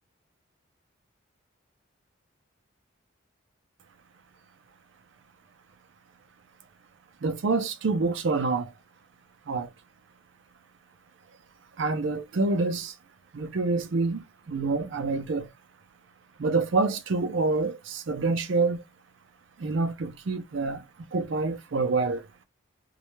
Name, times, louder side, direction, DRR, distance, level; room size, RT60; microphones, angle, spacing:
voice 1, 7.2-8.7 9.5-9.7 11.8-12.9 13.3-14.2 14.5-15.5 16.4-18.8 19.6-20.8 21.1-22.2, right 3 dB, 65° right, 0.5 m, -27 dB
2.3 x 2.1 x 2.9 m
head